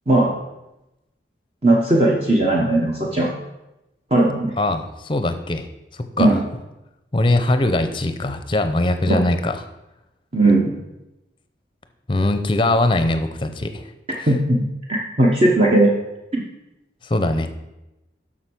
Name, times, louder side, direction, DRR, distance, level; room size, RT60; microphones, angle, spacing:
voice 1, 1.6-3.3 4.1-4.5 6.2-6.4 9.1-9.2 10.3-10.8 14.3-14.6 14.9-15.9 16.3-16.4, right 1 dB, 30° right, -3 dB, 1.0 m, -17 dB
voice 2, 4.6-5.7 6.2-6.4 7.1-9.6 12.1-13.8 14.2-14.3 17.0-17.5, left 2 dB, 25° left, 8 dB, 0.7 m, -21 dB
7.9 x 6.2 x 6.2 m, 0.95 s
head